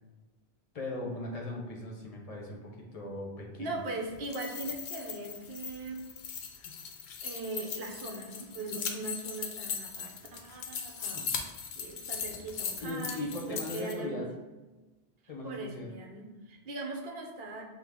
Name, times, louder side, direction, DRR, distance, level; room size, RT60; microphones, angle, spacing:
voice 1, 0.7-3.8 6.6-6.7 11.1-11.3 12.8-14.3 15.3-15.9, left 2 dB, 40° left, -1 dB, 0.8 m, -39 dB
voice 2, 3.6-6.0 7.2-11.2 11.8-14.2 15.4-17.6, right 2 dB, 65° right, 1 dB, 0.9 m, -40 dB
sound 1, 4.1-13.9, left 6 dB, 75° left, 0.8 m, -39 dB
5.9 x 2.0 x 3.5 m, 1.1 s
omnidirectional pair, 1.1 m